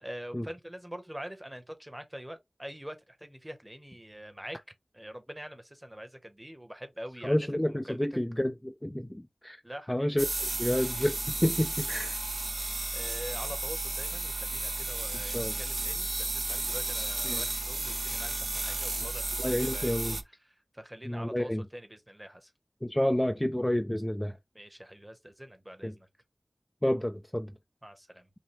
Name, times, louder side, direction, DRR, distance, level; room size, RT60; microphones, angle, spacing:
voice 1, 0.0-4.6 4.9-7.4 7.6-8.2 9.6-10.2 12.9-20.2 20.4-22.5 24.5-26.1 27.8-28.3, equal, 15° right, 0.9 m, -44 dB
voice 2, 7.2-9.6 9.9-12.2 15.2-15.5 17.2-17.4 19.4-20.2 21.0-21.6 22.8-24.4 25.8-25.9 26.8-27.5, left 1 dB, 10° left, 0.3 m, -29 dB
sound 1, 10.2-20.2, right 2 dB, 55° right, 0.6 m, -33 dB
5.5 x 2.1 x 3.2 m
wide cardioid pair, 65°, 0 cm